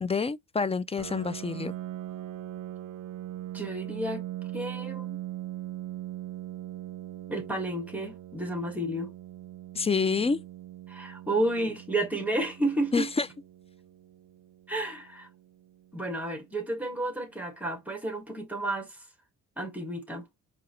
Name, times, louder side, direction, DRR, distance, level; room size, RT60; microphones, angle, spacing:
voice 1, 0.0-1.7 9.8-10.4 12.9-13.3, left 4 dB, 20° left, 0.4 m, -27 dB
Piano, 1.0-16.4, right 13 dB, 75° right, 0.5 m, -41 dB
voice 2, 3.5-4.2 4.5-5.2 7.3-9.1 10.9-13.1 14.7-15.3 15.9-19.0 19.6-20.3, right 1 dB, 5° right, 2.0 m, -31 dB
4.7 x 2.9 x 3.1 m
cardioid pair, 90°, 30 cm